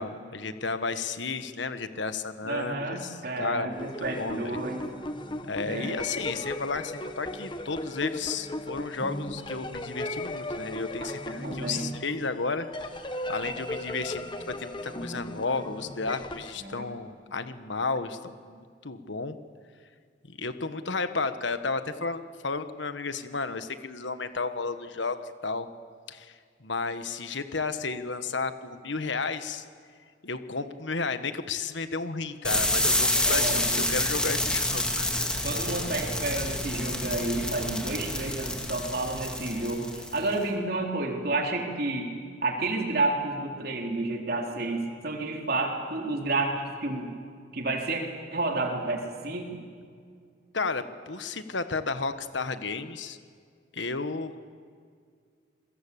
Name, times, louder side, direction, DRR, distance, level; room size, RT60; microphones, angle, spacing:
voice 1, 0.0-4.6 5.4-12.7 13.3-19.4 20.3-25.7 26.1-29.6 30.2-35.4 50.5-53.2 53.7-54.4, left 4 dB, 70° left, 10 dB, 1.4 m, -33 dB
voice 2, 2.4-4.8 5.7-5.9 11.0-11.1 11.4-11.9 16.6-16.8 33.2-33.9 35.4-42.1 42.4-47.1 47.5-48.0 48.3-49.5, right 2 dB, 50° right, 1 dB, 3.8 m, -30 dB
sound 1, 3.7-16.5, left 1 dB, 25° left, 1.3 m, -36 dB
sound 2, 32.4-40.3, left 1 dB, 5° left, 2.4 m, -28 dB
28.5 x 22.0 x 8.7 m, 2.1 s
head